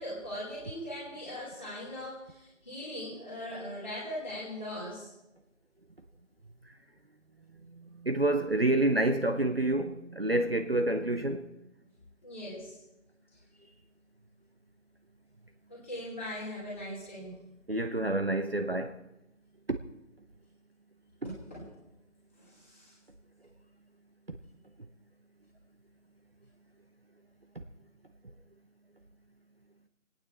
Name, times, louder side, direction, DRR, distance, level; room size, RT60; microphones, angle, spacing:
voice 1, 0.0-5.1 12.2-12.8 15.7-17.3 21.2-21.7 22.4-22.9, left 1 dB, 10° left, 2.5 m, -40 dB
voice 2, 7.9-11.5 17.7-18.9, right 2 dB, 50° right, 0.7 m, -28 dB
26.5 x 8.9 x 4.3 m
figure-of-eight pair, 175°, 39 cm